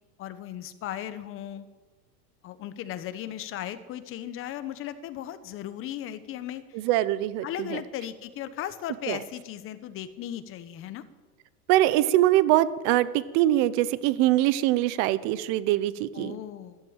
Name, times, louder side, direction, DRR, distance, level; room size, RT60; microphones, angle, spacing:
voice 1, 0.2-1.7 2.4-6.8 7.4-11.0 16.1-16.8, left 11 dB, 30° left, 12 dB, 1.0 m, -37 dB
voice 2, 6.7-7.8 9.1-9.2 11.7-16.4, right 14 dB, 40° right, 16 dB, 0.8 m, -23 dB
13.0 x 12.5 x 8.9 m, 1.3 s
supercardioid pair, 150°, 47 cm